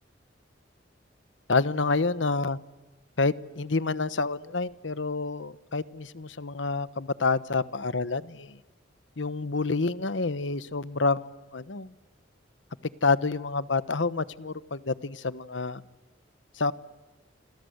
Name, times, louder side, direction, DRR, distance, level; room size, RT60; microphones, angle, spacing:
voice 1, 1.5-2.6 3.2-8.6 9.2-11.9 13.0-15.8 16.6-16.7, left 3 dB, 80° left, 16 dB, 1.1 m, -28 dB
27.5 x 26.5 x 8.0 m, 1.1 s
head